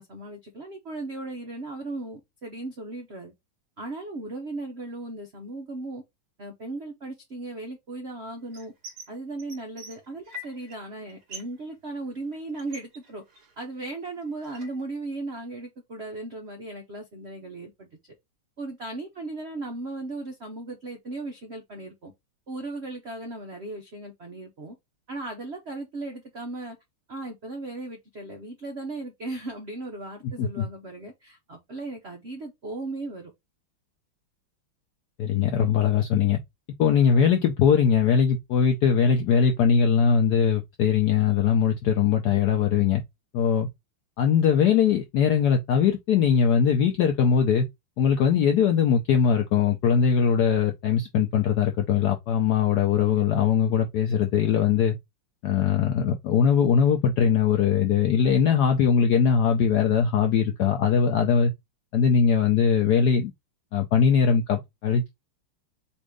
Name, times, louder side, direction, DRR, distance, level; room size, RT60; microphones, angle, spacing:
voice 1, 0.0-3.3 3.8-6.0 6.4-8.7 9.1-13.2 13.6-17.9 18.6-22.1 22.5-24.8 25.1-26.8 27.1-33.3, right 2 dB, 70° right, 0.6 m, -37 dB
sound 1, 8.5-9.1 9.4-10.8 11.0-11.6 11.9-13.7 14.0-14.9, equal, 50° right, 1.7 m, -43 dB
voice 2, 35.2-36.4 36.8-43.0 43.3-43.7 44.2-47.7 48.0-55.0 55.4-61.5 61.9-63.3 63.7-65.1, left 7 dB, 80° left, 0.9 m, -21 dB
4.2 x 2.6 x 4.7 m
omnidirectional pair, 2.4 m